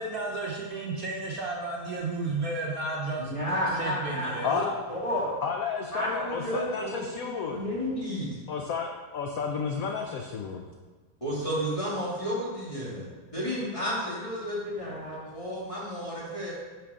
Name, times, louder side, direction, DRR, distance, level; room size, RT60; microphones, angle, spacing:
voice 1, 0.0-3.3 3.8-4.5, right 3 dB, 55° right, -2 dB, 1.1 m, -32 dB
voice 2, 3.2-4.6 4.9-5.3 5.9-8.3 11.2-16.5, equal, 15° left, -7 dB, 2.4 m, -32 dB
voice 3, 4.4-4.8 5.4-7.6 8.5-10.7, left 6 dB, 65° left, 2 dB, 0.8 m, -32 dB
10.5 x 5.8 x 3.7 m, 1.3 s
omnidirectional pair, 2.1 m